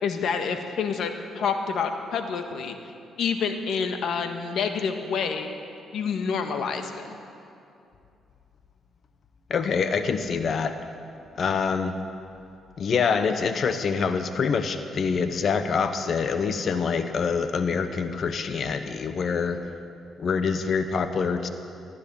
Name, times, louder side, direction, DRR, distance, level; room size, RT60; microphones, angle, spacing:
voice 1, 0.0-2.8 3.2-5.5 5.9-6.9, left 6 dB, 70° left, 6 dB, 1.5 m, -28 dB
voice 2, 9.5-10.8 11.4-11.9 12.8-19.6 20.2-21.5, left 5 dB, 55° left, 9 dB, 0.9 m, -25 dB
15.5 x 10.5 x 8.5 m, 2.6 s
cardioid pair, 90°, 0 cm